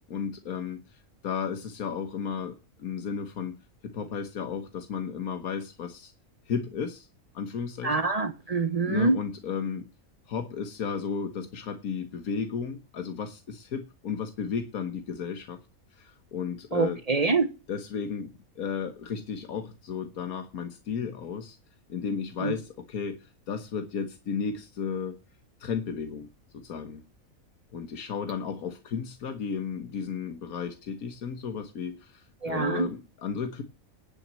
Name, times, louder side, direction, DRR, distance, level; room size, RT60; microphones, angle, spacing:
voice 1, 0.1-3.6 3.8-6.1 6.5-7.1 7.3-8.1 8.9-9.8 10.3-15.6 16.0-17.0 17.7-21.6 21.9-25.2 25.6-26.3 26.5-27.0 27.7-33.6, left 6 dB, 85° left, 1.7 m, -34 dB
voice 2, 7.8-9.2 16.7-17.5 22.4-22.5 32.4-32.9, right 3 dB, 30° right, 0.8 m, -25 dB
11.0 x 6.1 x 7.5 m
omnidirectional pair, 1.5 m